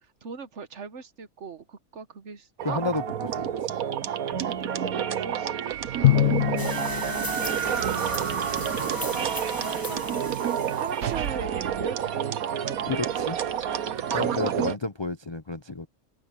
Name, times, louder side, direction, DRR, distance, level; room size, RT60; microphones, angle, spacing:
voice 1, 0.0-2.8 3.2-3.3 4.7-6.3 9.5-12.8, right 5 dB, 55° right, 1.3 m, -40 dB
voice 2, 2.6-3.0 3.4-3.5 6.2-6.5 12.8-13.4 14.1-15.9, left 3 dB, 30° left, 0.5 m, -31 dB
sound 1, 2.6-14.8, right 9 dB, 85° right, 1.5 m, -29 dB
Drum, 6.0-8.2, left 13 dB, 65° left, 0.8 m, -25 dB
sound 2, 6.6-11.3, left 2 dB, 15° left, 1.1 m, -37 dB
open air
omnidirectional pair, 1.5 m